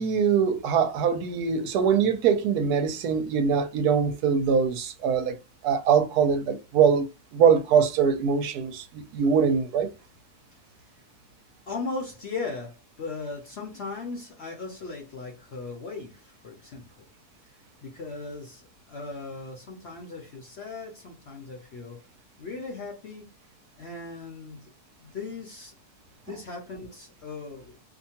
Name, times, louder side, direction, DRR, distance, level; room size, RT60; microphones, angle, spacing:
voice 1, 0.0-5.3 5.6-7.1 7.3-9.9, right 7 dB, 75° right, 1.0 m, -23 dB
voice 2, 11.7-17.0 17.8-22.0 22.4-23.4 23.8-24.7 25.0-25.7 26.3-27.8, left 3 dB, 55° left, 0.8 m, -38 dB
2.8 x 2.2 x 2.8 m
omnidirectional pair, 1.7 m